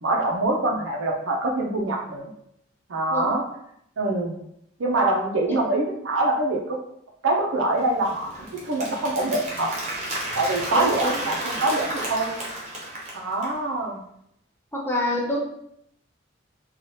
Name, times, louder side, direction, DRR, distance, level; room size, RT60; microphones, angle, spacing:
voice 1, 0.0-2.3 2.9-3.4 4.0-4.4 4.8-6.8 7.2-8.3 8.7-9.7 10.3-12.3 13.1-14.0, right 2 dB, 70° right, 0 dB, 0.6 m, -24 dB
Applause, 7.8-13.6, right 1 dB, 35° right, 0.7 m, -32 dB
voice 2, 10.7-11.2 14.7-15.4, left 1 dB, 10° left, -3 dB, 0.5 m, -27 dB
3.1 x 2.4 x 2.8 m, 0.75 s
head